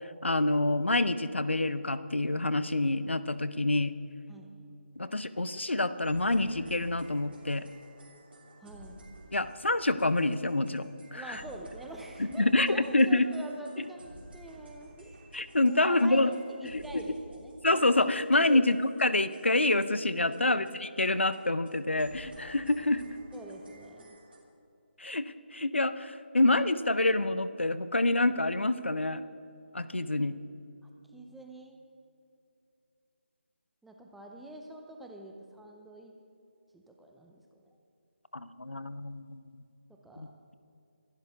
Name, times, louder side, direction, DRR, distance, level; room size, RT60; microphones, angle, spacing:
voice 1, 0.2-3.9 5.0-7.7 9.3-11.4 12.4-13.3 15.3-16.3 16.7-16.8 17.6-23.0 25.0-29.2 29.7-30.4 38.3-39.6 40.2-40.3, left 2 dB, 75° left, 14 dB, 0.8 m, -27 dB
sound 1, 6.0-20.7 21.0-21.1 21.3-21.4 21.7-21.8 22.0-24.4, right 1 dB, 55° right, 3.1 m, -52 dB
voice 2, 8.6-9.0 11.1-15.2 15.7-17.5 18.5-18.6 20.3-20.7 23.3-24.2 31.1-31.8 33.8-36.1 36.7-37.7 39.9-40.3, right 1 dB, ahead, 1 dB, 0.6 m, -46 dB
23.5 x 11.5 x 3.6 m, 2.6 s
figure-of-eight pair, 155°, 6 cm